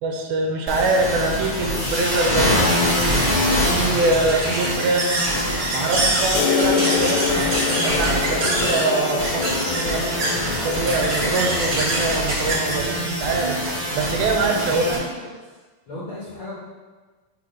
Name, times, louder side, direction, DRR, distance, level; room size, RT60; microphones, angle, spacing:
voice 1, 0.0-2.7 3.4-5.2 5.7-7.4 7.8-10.1 10.4-13.6 14.0-15.0, right 3 dB, 85° right, 2 dB, 2.5 m, -24 dB
sound 1, 0.7-14.9, left 1 dB, 15° left, 0.6 m, -25 dB
sound 2, 1.8-14.4, right 1 dB, 50° right, 1.5 m, -27 dB
sound 3, 6.4-13.9, left 7 dB, 80° left, 2.3 m, -27 dB
voice 2, 14.6-15.0 15.9-16.5, equal, 60° left, -9 dB, 1.4 m, -34 dB
6.4 x 3.5 x 5.2 m, 1.3 s
omnidirectional pair, 4.3 m